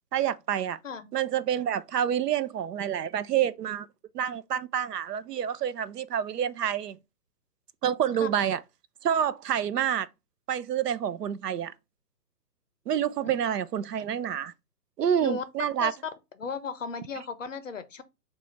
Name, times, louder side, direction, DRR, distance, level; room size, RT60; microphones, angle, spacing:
voice 1, 0.1-0.8 1.1-3.9 4.1-7.0 7.8-8.6 9.0-10.1 10.5-11.7 12.9-14.5 15.0-15.9, right 9 dB, 70° right, 0.6 m, -28 dB
voice 2, 16.4-18.0, left 6 dB, 50° left, 0.6 m, -35 dB
6.1 x 2.4 x 3.0 m
hypercardioid pair, 175°, 49 cm